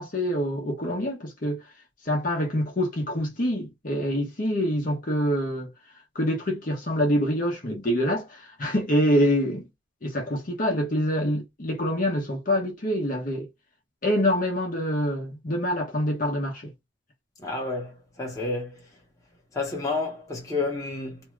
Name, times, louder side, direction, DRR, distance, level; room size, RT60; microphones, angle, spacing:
voice 1, 0.0-1.6 2.0-5.7 6.1-9.7 10.0-13.5 14.0-16.7, equal, 45° left, 0.9 m, -26 dB
voice 2, 17.4-18.8 19.5-21.2, left 3 dB, 15° left, 1.0 m, -30 dB
2.7 x 2.4 x 3.1 m
head